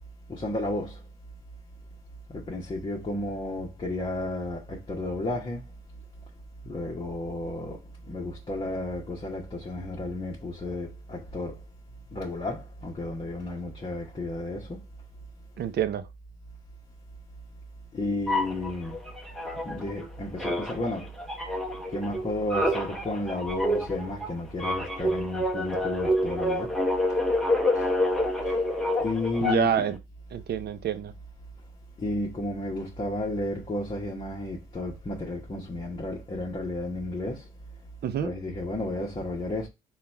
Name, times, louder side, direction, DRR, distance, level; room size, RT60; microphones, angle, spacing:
voice 1, 0.3-1.0 2.3-5.6 6.6-7.8 8.1-11.6 12.1-14.8 17.9-18.9 19.6-21.1 21.9-26.8 27.7-27.9 28.4-28.5 29.0-29.8 32.0-37.5 38.2-39.7, left 2 dB, 25° left, 1.0 m, -32 dB
voice 2, 15.6-16.1 29.4-30.0 30.3-31.1 38.0-38.3, right 9 dB, 55° right, 0.6 m, -27 dB
sound 1, 18.3-20.1 20.4-29.9, left 1 dB, ahead, 0.9 m, -28 dB
3.9 x 2.4 x 4.4 m
cardioid pair, 90°, 20 cm